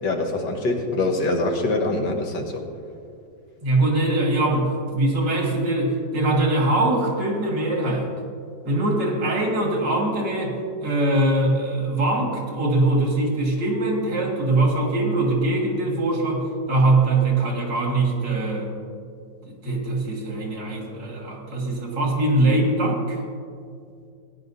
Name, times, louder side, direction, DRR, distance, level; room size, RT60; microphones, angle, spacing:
voice 1, 0.0-2.6, left 2 dB, 85° left, 2 dB, 1.9 m, -24 dB
voice 2, 3.6-8.1 8.6-18.7 19.5-23.2, right 2 dB, 80° right, -1 dB, 2.6 m, -22 dB
16.5 x 10.0 x 2.7 m, 2.3 s
omnidirectional pair, 1.9 m